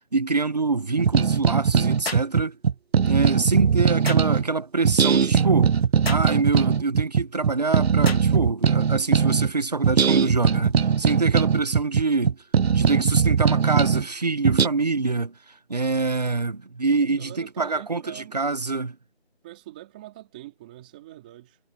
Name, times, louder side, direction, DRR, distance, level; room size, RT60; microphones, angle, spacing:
voice 1, 0.1-2.6 3.1-5.7 6.1-12.4 12.7-15.3 15.7-19.0, right 3 dB, 40° right, 1.3 m, -25 dB
sound 1, 1.0-4.4 4.8-9.5 9.8-14.1 14.4-14.7, right 7 dB, 70° right, 0.5 m, -20 dB
sound 2, 2.0-2.3 4.0-4.3 6.0-6.3 8.0-8.3, left 3 dB, 65° left, 2.4 m, -32 dB
voice 2, 3.3-3.8 17.0-18.4 19.4-21.6, right 15 dB, 10° right, 2.9 m, -44 dB
figure-of-eight pair, 175°, 32 cm